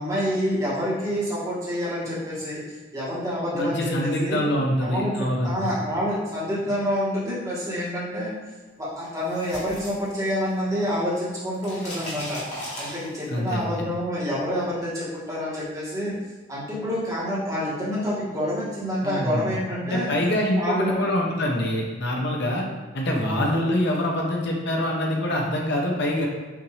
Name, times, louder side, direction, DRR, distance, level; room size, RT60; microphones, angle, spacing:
voice 1, 0.0-2.6 2.9-4.5 4.8-5.1 5.4-8.3 8.8-12.4 12.8-16.1 16.5-20.1 20.6-21.1 23.2-23.6, equal, 15° right, -8 dB, 1.2 m, -27 dB
voice 2, 3.5-5.7 13.3-13.9 19.0-19.6 19.8-22.6 22.9-26.3, left 1 dB, 60° left, 0 dB, 0.8 m, -25 dB
sound 1, 9.0-10.7 11.0-13.5, equal, 35° left, 1.3 m, -37 dB
5.8 x 2.6 x 3.2 m, 1.3 s
head